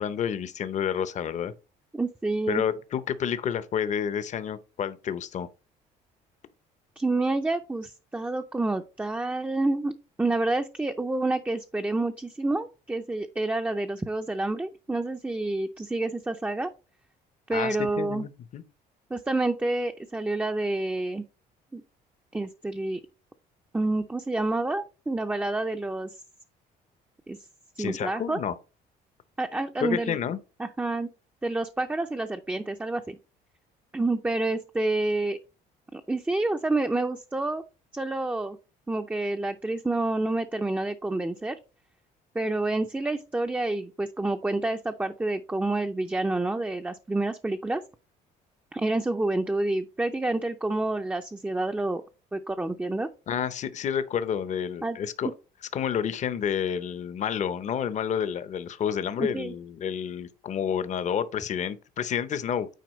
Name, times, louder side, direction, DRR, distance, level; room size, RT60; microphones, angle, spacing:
voice 1, 0.0-1.5 2.5-5.5 17.5-18.6 27.8-28.5 29.8-30.4 53.3-55.3 55.7-62.7, left 8 dB, 45° left, 0.7 m, -29 dB
voice 2, 1.9-2.6 7.0-9.9 10.2-16.7 17.5-18.2 19.1-21.2 21.7-21.8 22.3-23.0 23.7-26.1 27.3-27.4 27.8-28.4 29.4-30.2 30.6-31.1 31.4-33.2 33.9-35.4 35.9-37.6 37.9-38.6 38.9-41.6 42.3-47.8 48.7-52.0 52.3-53.1 54.8-55.0 55.2-55.3 59.2-59.6, right 2 dB, 10° right, 0.5 m, -28 dB
9.3 x 4.2 x 3.1 m
cardioid pair, 110°, 17 cm